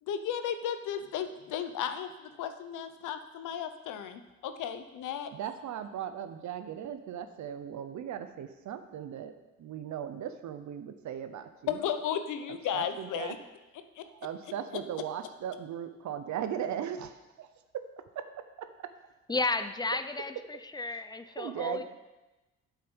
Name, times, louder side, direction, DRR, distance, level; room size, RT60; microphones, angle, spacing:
voice 1, 0.0-5.3 11.7-13.4 14.0-14.1, left 9 dB, 85° left, 9 dB, 0.8 m, -34 dB
voice 2, 5.3-9.3 9.6-11.8 12.7-13.5 14.0-17.9 18.1-18.3 18.6-18.9 19.9-20.0 20.9-21.8, right 9 dB, 70° right, 10 dB, 0.9 m, -38 dB
voice 3, 19.3-20.3 20.7-21.8, left 3 dB, 15° left, 11 dB, 0.6 m, -32 dB
8.7 x 7.6 x 5.4 m, 1.1 s
cardioid pair, 90°, 30 cm